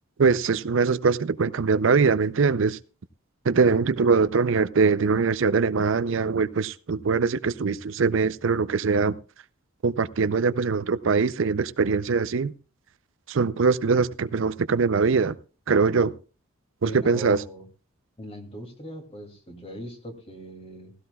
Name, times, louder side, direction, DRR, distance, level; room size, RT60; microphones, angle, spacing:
voice 1, 0.2-2.8 3.5-9.1 9.8-12.5 13.3-15.3 15.7-16.1 16.8-17.4, right 4 dB, 60° right, 0.5 m, -22 dB
voice 2, 16.8-17.7 18.2-20.9, equal, 30° left, 2.5 m, -39 dB
16.5 x 16.5 x 2.3 m
head